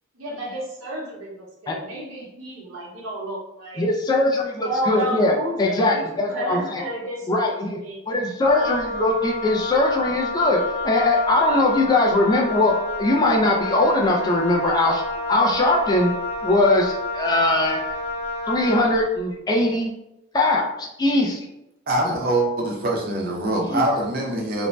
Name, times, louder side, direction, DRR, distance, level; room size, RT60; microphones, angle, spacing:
voice 1, 0.1-3.9 4.6-8.0, right 1 dB, 85° right, -3 dB, 0.9 m, -31 dB
voice 2, 3.8-5.3 5.6-6.8 7.3-7.8 8.1-15.0 15.3-16.1 16.4-17.9 18.5-19.9 20.3-20.7 21.0-21.4 23.7-23.8, left 2 dB, 20° left, 0 dB, 0.3 m, -20 dB
Wind instrument woodwind instrument, 8.5-19.0, left 2 dB, 10° right, 0.8 m, -29 dB
voice 3, 21.9-24.7, right 1 dB, 45° right, -1 dB, 0.6 m, -23 dB
2.6 x 2.1 x 3.1 m, 0.88 s
head